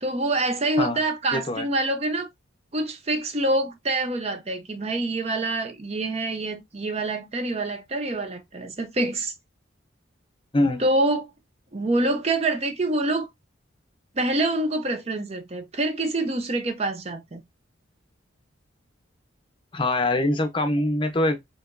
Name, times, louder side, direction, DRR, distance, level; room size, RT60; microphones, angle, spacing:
voice 1, 0.0-2.3 2.7-9.3 10.8-11.3 11.7-13.3 14.1-17.4, right 2 dB, 30° right, 0.5 m, -26 dB
voice 2, 1.3-1.7 10.5-10.8 19.7-21.4, left 1 dB, 25° left, 0.6 m, -23 dB
4.8 x 2.9 x 2.5 m
head